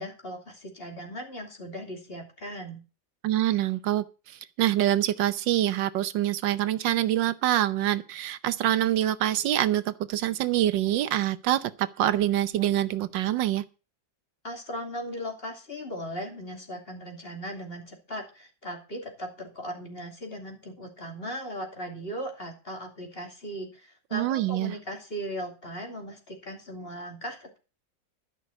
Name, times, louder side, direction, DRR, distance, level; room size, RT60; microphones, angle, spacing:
voice 1, 0.0-2.8 14.4-27.6, equal, 30° left, 3.0 m, -38 dB
voice 2, 3.2-4.0 4.6-13.6 24.1-24.7, right 13 dB, 85° right, 1.4 m, -25 dB
12.5 x 6.1 x 7.9 m
omnidirectional pair, 1.9 m